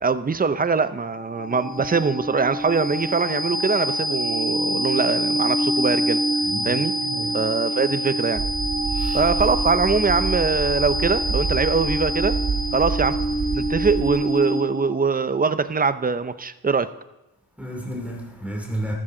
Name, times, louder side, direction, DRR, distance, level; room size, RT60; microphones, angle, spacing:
voice 1, 0.0-6.2 6.6-6.9 7.3-8.4 9.1-12.4 12.7-13.2 13.5-16.9, right 5 dB, 20° right, 13 dB, 0.6 m, -22 dB
sound 1, 1.0-14.9, right 1 dB, 35° left, 3.6 m, -26 dB
voice 2, 6.4-7.4 8.9-9.2 17.6-18.9, right 1 dB, 5° right, -1 dB, 2.7 m, -32 dB
sound 2, 8.3-14.1, right 5 dB, 65° right, 1.8 m, -28 dB
14.0 x 13.0 x 3.8 m, 1.0 s
cardioid pair, 90°, 40 cm